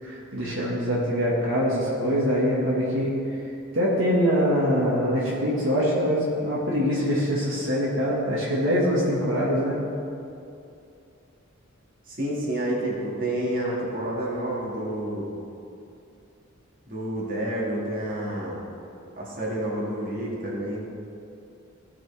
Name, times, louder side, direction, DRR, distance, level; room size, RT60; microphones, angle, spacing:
voice 1, 0.0-3.1 3.7-9.8, equal, 65° right, -6 dB, 1.7 m, -24 dB
voice 2, 12.1-15.3 16.9-18.6 19.2-20.9, right 1 dB, 45° right, -4 dB, 2.0 m, -29 dB
16.0 x 6.0 x 3.4 m, 2.6 s
head